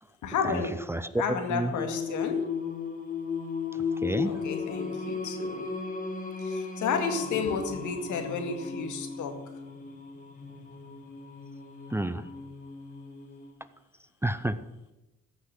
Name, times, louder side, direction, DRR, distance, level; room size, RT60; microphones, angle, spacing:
voice 1, 0.2-0.7 1.1-2.4 4.2-5.7 6.4-9.4, left 5 dB, 80° left, 5 dB, 2.0 m, -32 dB
voice 2, 0.9-1.7 3.7-4.4 11.9-12.3 14.2-14.6, right 1 dB, 10° right, 13 dB, 0.5 m, -30 dB
Singing, 1.8-13.5, left 5 dB, 25° left, 2.2 m, -35 dB
14.0 x 6.4 x 7.7 m, 1.0 s
cardioid pair, 90°, 30 cm